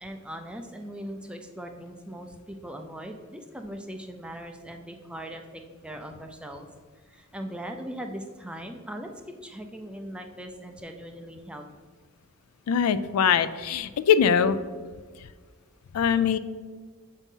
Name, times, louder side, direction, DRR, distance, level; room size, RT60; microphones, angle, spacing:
voice 1, 0.0-6.7 7.1-11.7, equal, 5° right, 4 dB, 0.4 m, -40 dB
voice 2, 12.7-14.6 15.9-16.4, left 7 dB, 90° left, 13 dB, 0.3 m, -22 dB
7.2 x 2.7 x 5.3 m, 1.5 s
head